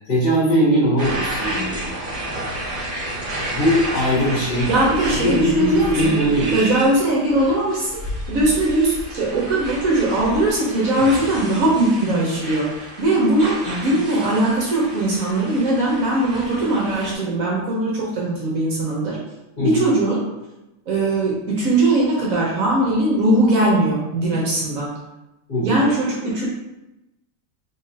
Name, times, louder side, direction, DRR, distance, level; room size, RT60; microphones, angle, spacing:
voice 1, 0.1-2.1 3.5-4.7 5.2-6.6 19.6-19.9 25.5-25.8, equal, 70° left, -11 dB, 2.1 m, -20 dB
sound 1, 1.0-17.1, right 1 dB, 25° right, 1.6 m, -31 dB
voice 2, 4.6-6.1 6.5-7.9 8.3-19.2 19.6-20.2 20.9-24.9 25.6-26.5, right 1 dB, 60° right, -4 dB, 1.2 m, -20 dB
4.0 x 3.6 x 2.7 m, 0.95 s
omnidirectional pair, 1.8 m